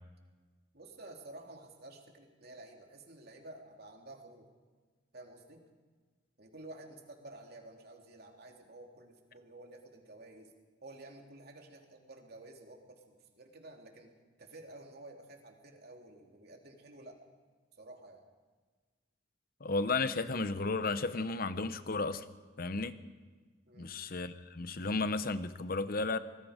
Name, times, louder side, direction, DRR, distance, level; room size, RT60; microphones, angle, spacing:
voice 1, 0.7-4.5 5.1-5.6 6.4-10.5 10.8-14.1 14.4-17.2 17.7-18.2 23.7-24.0, right 2 dB, 55° right, 2.9 m, -52 dB
voice 2, 19.6-22.2 22.6-23.0 23.8-26.2, left 3 dB, 50° left, 0.9 m, -33 dB
26.0 x 19.5 x 5.1 m
head